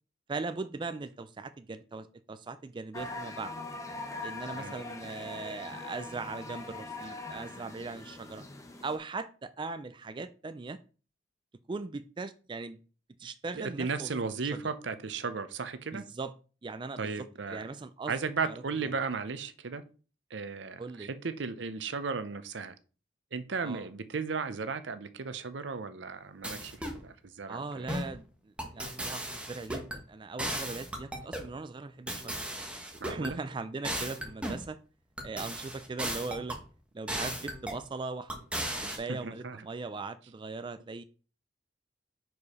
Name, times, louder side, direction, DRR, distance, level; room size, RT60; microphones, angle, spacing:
voice 1, 0.3-3.6 4.2-8.5 8.8-10.8 11.7-12.8 13.2-14.2 14.4-14.6 15.9-16.3 16.6-18.2 18.4-18.6 20.8-21.1 23.6-23.9 27.5-32.4 33.1-34.8 35.2-36.6 36.9-41.0, right 3 dB, 25° right, 11 dB, 0.3 m, -39 dB
sound 1, 2.9-9.0, left 2 dB, 15° left, 0.9 m, -42 dB
voice 2, 13.6-16.0 17.0-17.6 18.1-19.8 20.3-22.7 23.3-27.9 33.0-33.4 38.9-39.6, right 5 dB, 75° right, 12 dB, 0.7 m, -35 dB
sound 2, 26.4-27.0 27.9-28.2 28.6-30.0 30.4-31.5 32.1-33.3 33.8-34.7 35.2-36.6 37.1-37.8 38.3-39.0, right 1 dB, 5° right, 1.2 m, -36 dB
4.9 x 4.7 x 5.4 m, 0.37 s
head